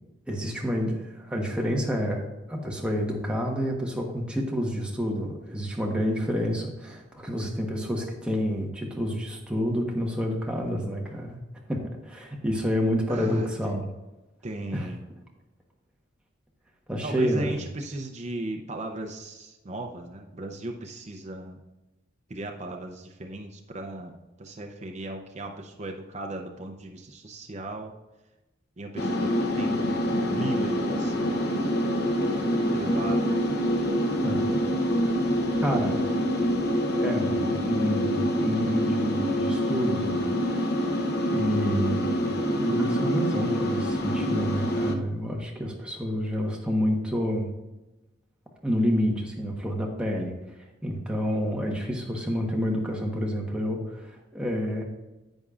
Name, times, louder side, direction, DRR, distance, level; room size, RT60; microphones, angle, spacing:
voice 1, 0.3-11.4 11.7-13.9 14.7-14.9 16.9-17.6 34.2-34.4 35.6-36.0 37.0-40.7 41.3-47.5 48.6-50.3 50.8-54.8, equal, 5° right, -1 dB, 1.1 m, -29 dB
voice 2, 13.1-13.9 14.4-15.0 17.0-21.6 22.3-27.9 28.8-31.4 32.7-33.4, right 1 dB, 35° right, 2 dB, 0.6 m, -37 dB
sound 1, 29.0-44.9, equal, 55° left, 0.8 m, -26 dB
10.5 x 8.2 x 2.5 m, 1.0 s
head